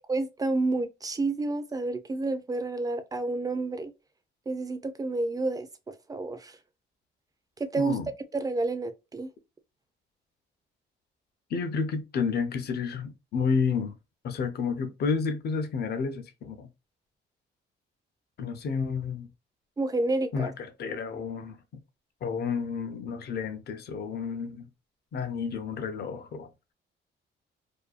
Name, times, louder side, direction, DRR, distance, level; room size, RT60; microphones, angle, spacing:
voice 1, 0.1-3.9 4.5-6.6 7.6-8.0 8.3-9.3 19.8-20.5, right 2 dB, 20° right, 0.4 m, -30 dB
voice 2, 7.8-8.1 11.5-13.9 14.2-16.7 18.4-19.3 20.3-20.5 20.8-21.6 22.2-24.7 25.1-26.5, left 5 dB, 55° left, 0.6 m, -30 dB
2.6 x 2.2 x 2.4 m
cardioid pair, 90°, 20 cm